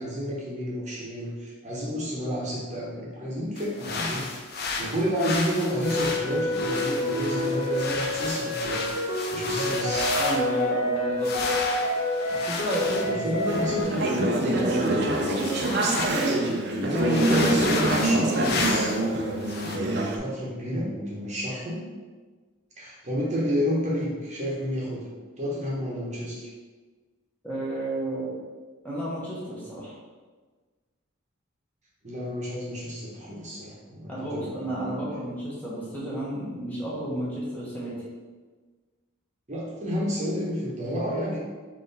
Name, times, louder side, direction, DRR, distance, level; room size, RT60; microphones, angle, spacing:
voice 1, 0.0-8.9 9.3-10.1 13.1-14.1 16.8-18.9 19.6-21.8 22.8-25.1 25.4-26.5 32.0-35.0 39.5-41.4, equal, 35° right, -5 dB, 0.9 m, -30 dB
sound 1, 3.6-10.6 11.2-16.2 16.4-16.6 16.9-19.1 19.4-19.8, left 3 dB, 50° left, 0.5 m, -33 dB
sound 2, 5.8-13.8, left 1 dB, 90° left, 0.9 m, -28 dB
voice 2, 10.2-11.5 12.3-13.4 13.7-15.3 27.4-28.3 28.8-29.9 34.1-37.9, right 1 dB, 10° left, -8 dB, 0.9 m, -32 dB
Conversation / Chatter, 13.5-20.2, right 1 dB, 55° right, 0.5 m, -25 dB
3.8 x 3.2 x 4.0 m, 1.4 s
head